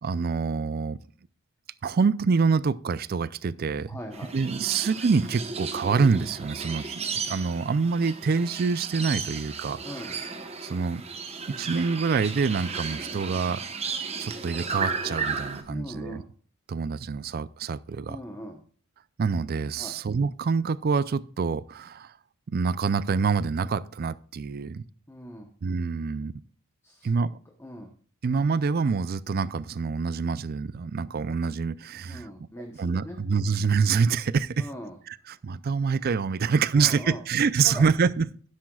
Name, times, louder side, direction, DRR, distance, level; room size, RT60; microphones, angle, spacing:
voice 1, 0.0-1.0 1.8-4.0 4.3-10.2 10.6-11.0 11.5-13.6 14.2-16.2 16.7-18.2 19.2-22.1 22.5-24.8 25.6-26.3 27.0-27.3 28.2-32.3 32.8-34.7 35.1-38.3, right 5 dB, 45° right, 0.4 m, -26 dB
voice 2, 3.8-4.3 9.8-10.1 15.7-16.2 18.1-18.6 19.8-20.0 25.1-25.5 26.8-27.1 27.6-27.9 32.1-33.2 34.6-35.0 36.7-37.2 37.6-37.8, left 1 dB, 10° left, 0.9 m, -40 dB
sound 1, 4.1-15.6, right 5 dB, 30° right, 1.0 m, -34 dB
12.0 x 10.5 x 2.3 m
head